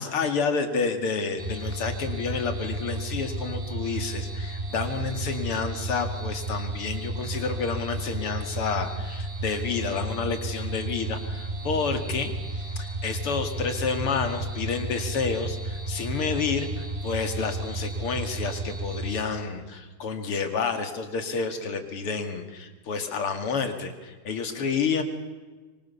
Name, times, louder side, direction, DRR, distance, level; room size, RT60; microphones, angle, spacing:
voice 1, 0.0-25.0, left 5 dB, 90° left, 7 dB, 3.2 m, -29 dB
sound 1, 1.4-19.2, right 2 dB, 15° right, 3.1 m, -33 dB
24.5 x 24.5 x 7.1 m, 1.3 s
omnidirectional pair, 2.4 m